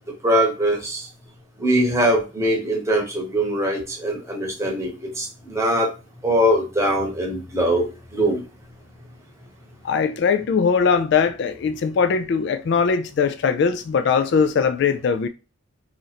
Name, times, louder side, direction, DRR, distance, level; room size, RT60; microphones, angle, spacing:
voice 1, 0.2-1.0 1.6-5.9 6.2-8.4, equal, 15° right, 0.9 m, -22 dB
voice 2, 9.8-15.3, left 5 dB, 60° left, 0.3 m, -20 dB
3.0 x 2.5 x 4.0 m
head